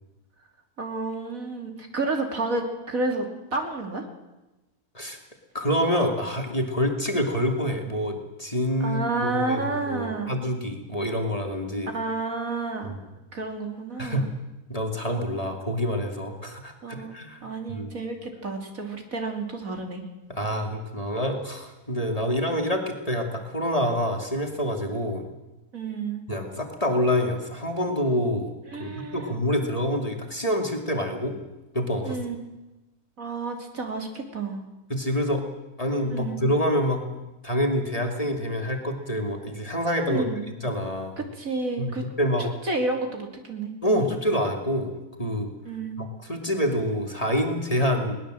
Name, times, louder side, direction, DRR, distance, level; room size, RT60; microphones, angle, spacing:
voice 1, 0.8-4.0 8.8-10.4 11.9-13.0 13.3-14.3 16.8-20.0 25.7-26.2 28.7-29.4 32.0-32.6 33.2-34.6 36.1-36.4 40.1-40.5 41.3-42.0 42.4-44.1 45.6-46.0, right 3 dB, 60° right, 3 dB, 3.3 m, -30 dB
voice 2, 5.5-11.9 12.8-13.0 14.0-14.3 14.7-17.9 20.3-25.3 26.3-28.5 28.8-31.4 31.7-32.2 34.9-35.4 35.8-40.2 40.6-41.2 41.8-42.5 43.8-45.5 46.0-48.2, equal, 25° left, 3 dB, 2.6 m, -27 dB
21.5 x 19.0 x 7.8 m, 1.0 s
omnidirectional pair, 1.6 m